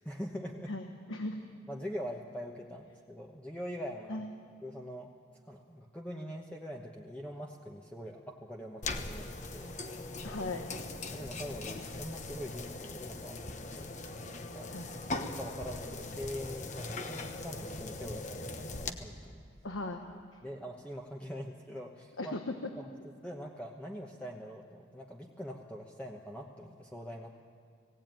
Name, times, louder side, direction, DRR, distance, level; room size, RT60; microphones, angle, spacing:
voice 1, 0.0-0.7 1.7-4.2 4.6-5.1 5.5-10.0 10.3-10.4 11.1-13.9 14.3-14.7 15.2-19.4 20.4-22.3 22.8-22.9 23.2-27.3, equal, 5° left, -1 dB, 1.0 m, -43 dB
voice 2, 0.7-1.5 4.1-4.3 10.2-10.7 14.7-14.9 19.6-20.1 22.2-22.4, left 2 dB, 90° left, 5 dB, 1.3 m, -38 dB
sound 1, 8.8-18.9, left 2 dB, 35° left, 1.1 m, -40 dB
19.5 x 17.0 x 9.1 m, 2.3 s
head